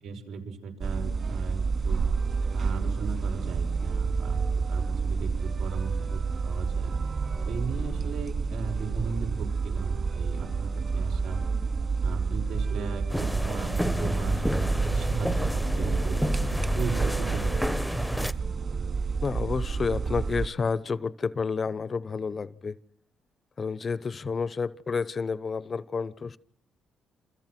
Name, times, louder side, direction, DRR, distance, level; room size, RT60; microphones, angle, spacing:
voice 1, 0.0-2.0 2.5-6.9 7.5-11.4 12.0-16.2 16.7-17.7, right 5 dB, 80° right, 6.0 m, -37 dB
sound 1, 0.8-20.5, right 4 dB, 45° right, 2.7 m, -29 dB
sound 2, 13.1-18.3, equal, ahead, 1.0 m, -29 dB
voice 2, 19.2-22.8 23.6-26.4, left 5 dB, 40° left, 1.0 m, -30 dB
28.0 x 27.5 x 6.1 m
cardioid pair, 90°, 0 cm